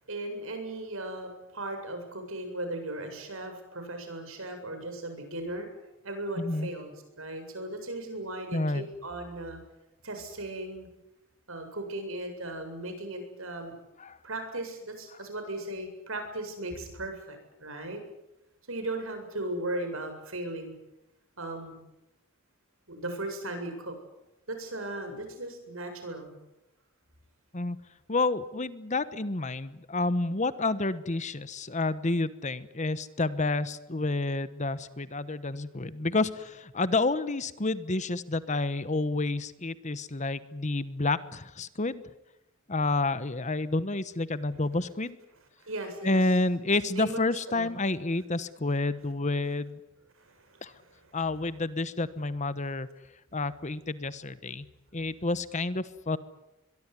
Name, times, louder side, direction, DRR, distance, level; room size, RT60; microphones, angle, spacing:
voice 1, 0.1-5.7 6.0-9.6 10.0-10.9 11.5-13.7 14.2-18.0 18.7-20.7 21.4-21.8 22.9-24.0 24.5-26.3 45.6-46.2 47.0-47.2 47.5-47.7 50.2-50.6, right 1 dB, 70° right, 6 dB, 7.8 m, -37 dB
voice 2, 6.4-6.7 8.5-8.9 14.0-14.2 27.5-27.8 28.1-42.0 42.7-45.2 46.0-49.8 50.6-50.7 51.1-52.9 53.3-54.7 54.9-56.2, left 2 dB, 35° left, 15 dB, 1.1 m, -29 dB
23.0 x 23.0 x 9.8 m, 0.90 s
head